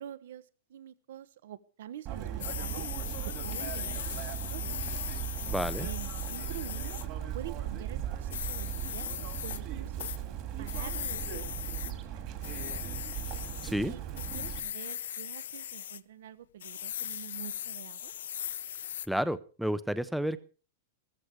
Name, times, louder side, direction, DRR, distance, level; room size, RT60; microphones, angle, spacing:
voice 1, 0.0-2.9 3.2-4.8 5.4-5.5 5.8-6.9 7.3-10.1 10.6-12.8 13.8-14.0 14.3-18.1, right 11 dB, 65° right, 16 dB, 1.1 m, -46 dB
Chirp tweet, 2.1-14.6, right 10 dB, 30° right, 2.1 m, -37 dB
sound 1, 2.4-7.1 8.3-9.6 10.0-10.2 10.7-11.9 12.4-13.7 14.2-16.0 16.6-19.1, left 10 dB, 85° left, 0.6 m, -39 dB
voice 2, 5.5-5.9 13.6-13.9 19.1-20.4, equal, ahead, 15 dB, 0.6 m, -31 dB
15.0 x 14.5 x 4.7 m, 0.37 s
supercardioid pair, 170°, 0 cm